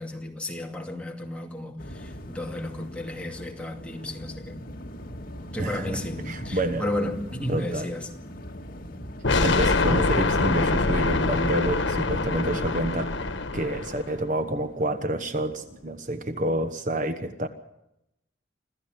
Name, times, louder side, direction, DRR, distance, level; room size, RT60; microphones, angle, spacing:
voice 1, 0.0-4.6 5.5-8.1, left 1 dB, 5° left, 2.4 m, -33 dB
sound 1, 1.8-16.7, equal, 50° left, 2.3 m, -43 dB
voice 2, 5.6-6.0 6.3-6.9 7.5-7.9 9.4-13.1 13.5-17.5, right 1 dB, 45° right, 1.2 m, -28 dB
sound 2, 9.2-14.1, left 3 dB, 85° left, 1.4 m, -24 dB
26.0 x 14.5 x 7.7 m
head